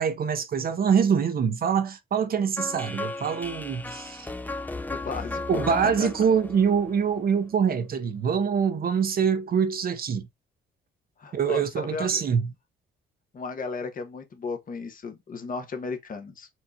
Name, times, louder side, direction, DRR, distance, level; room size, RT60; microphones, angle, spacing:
voice 1, 0.0-4.3 5.5-10.3 11.3-12.5, right 7 dB, 50° right, 0.7 m, -24 dB
sound 1, 2.6-7.5, left 2 dB, 10° left, 0.5 m, -35 dB
voice 2, 4.9-5.7 6.0-6.1 11.2-12.2 13.3-16.5, left 4 dB, 45° left, 1.1 m, -35 dB
4.5 x 3.8 x 2.8 m
cardioid pair, 90°, 20 cm